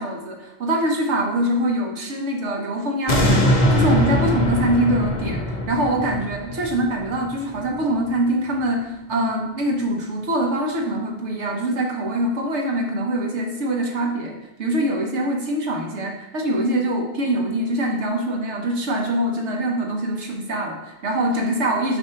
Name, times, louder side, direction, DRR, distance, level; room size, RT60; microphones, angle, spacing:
voice 1, 0.0-22.0, right 1 dB, 80° right, 2 dB, 1.2 m, -24 dB
sound 1, 3.1-8.2 8.7-8.8, equal, 45° left, 0.8 m, -22 dB
6.2 x 2.7 x 5.6 m, 0.90 s
omnidirectional pair, 1.2 m